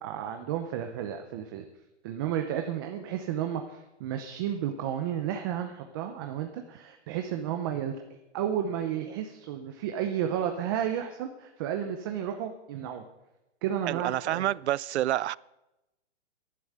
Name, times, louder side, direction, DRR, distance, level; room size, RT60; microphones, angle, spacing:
voice 1, 0.0-1.6 2.0-7.9 8.3-13.0 13.6-14.5, right 9 dB, 20° right, 0.6 m, -32 dB
voice 2, 13.9-15.4, right 13 dB, 70° right, 0.5 m, -28 dB
12.0 x 11.0 x 7.9 m
hypercardioid pair, 165°, 34 cm